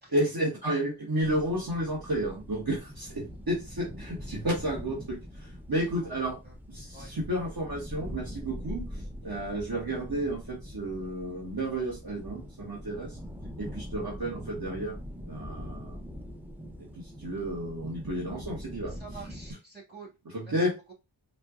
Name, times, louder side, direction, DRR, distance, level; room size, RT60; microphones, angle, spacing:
voice 1, 0.1-6.4 6.7-13.2 13.6-15.0 15.3-16.0 17.0-18.9 20.5-20.7, right 1 dB, 50° right, -3 dB, 1.2 m, -32 dB
sound 1, 1.2-19.5, equal, 5° right, 0.5 m, -43 dB
voice 2, 18.9-20.1 20.4-20.9, right 4 dB, 20° right, -3 dB, 1.8 m, -48 dB
4.2 x 2.2 x 2.4 m, 0.25 s
wide cardioid pair, 55°, 48 cm